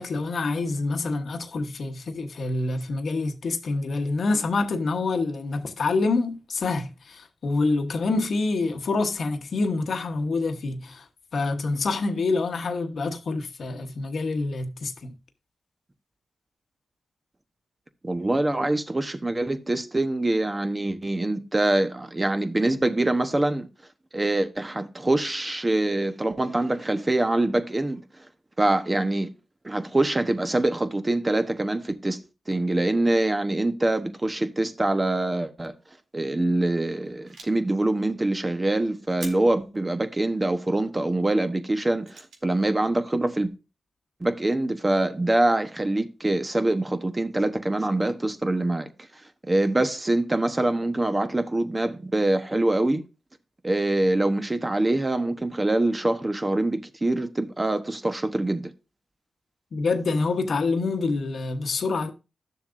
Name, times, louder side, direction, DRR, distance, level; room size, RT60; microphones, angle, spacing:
voice 1, 0.0-11.1 11.3-15.2 59.7-62.1, left 3 dB, 65° left, 1.1 m, -26 dB
voice 2, 18.0-23.7 24.1-28.0 28.6-29.3 29.6-32.2 32.5-35.7 36.1-43.5 44.2-48.9 49.4-53.0 53.6-58.7, right 2 dB, 25° right, 1.0 m, -24 dB
sound 1, 37.0-37.6 39.2-39.7 42.0-42.5, right 3 dB, 90° right, 1.8 m, -43 dB
11.5 x 6.9 x 2.6 m
cardioid pair, 60°, 0 cm